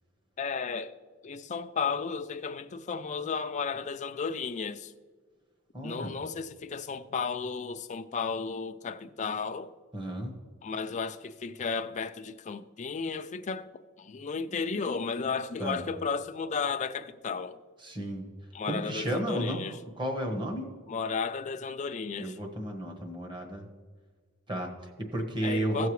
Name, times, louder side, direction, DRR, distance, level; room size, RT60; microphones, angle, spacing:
voice 1, 0.4-0.9 1.2-4.9 5.8-9.7 10.6-13.7 14.0-17.6 18.5-19.8 20.9-22.3 25.4-25.9, left 5 dB, 35° left, 0.4 m, -33 dB
voice 2, 5.7-6.1 9.9-10.3 15.6-15.8 17.8-18.3 18.6-19.6 20.0-20.7 22.2-23.6 24.5-25.9, right 1 dB, 20° right, 1.3 m, -33 dB
16.0 x 6.8 x 3.2 m
head